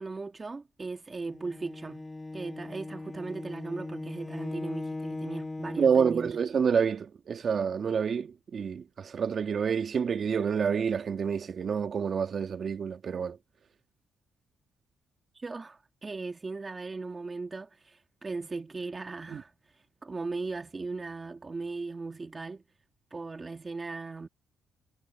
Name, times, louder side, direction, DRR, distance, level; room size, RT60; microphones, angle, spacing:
voice 1, 0.0-2.1 2.3-6.4 15.3-22.6 23.1-24.3, right 3 dB, 25° right, 2.2 m, -38 dB
Bowed string instrument, 1.3-6.0, left 2 dB, 15° left, 6.9 m, -39 dB
voice 2, 5.8-13.4 19.3-19.4, right 6 dB, 50° right, 1.7 m, -28 dB
cardioid pair, 90°, 0 cm